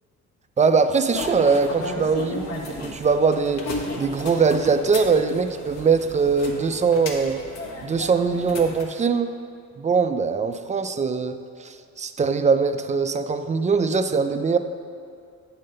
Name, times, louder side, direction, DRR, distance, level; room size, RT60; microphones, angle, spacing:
voice 1, 0.6-7.4 7.8-9.3 9.8-14.6, right 5 dB, 25° right, 9 dB, 0.4 m, -22 dB
sound 1, 1.1-8.8, left 2 dB, 60° left, 1.2 m, -34 dB
8.8 x 3.7 x 6.5 m, 2.4 s
cardioid pair, 90°, 30 cm